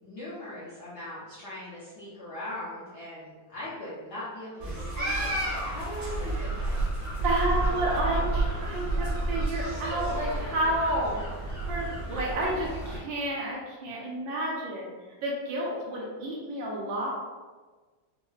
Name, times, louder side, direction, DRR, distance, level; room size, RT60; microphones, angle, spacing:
voice 1, 0.0-6.8 7.8-8.3, left 1 dB, 65° left, -10 dB, 1.0 m, -40 dB
sound 1, 4.6-13.0, right 2 dB, 35° right, 0.6 m, -31 dB
voice 2, 7.2-14.9 15.2-17.1, right 1 dB, 75° right, -3 dB, 1.2 m, -30 dB
4.3 x 2.0 x 2.3 m, 1.3 s
omnidirectional pair, 2.4 m